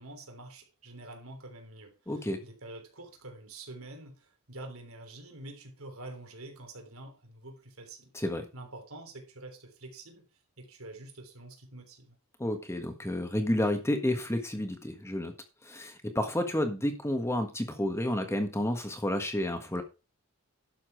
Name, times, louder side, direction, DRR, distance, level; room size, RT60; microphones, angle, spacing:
voice 1, 0.0-8.1 8.5-10.3 10.6-12.2, right 2 dB, 75° right, 3.4 m, -47 dB
voice 2, 2.1-2.4 8.1-8.4 12.4-15.3 15.6-19.8, left 1 dB, 10° left, 1.4 m, -30 dB
11.5 x 7.2 x 4.5 m
head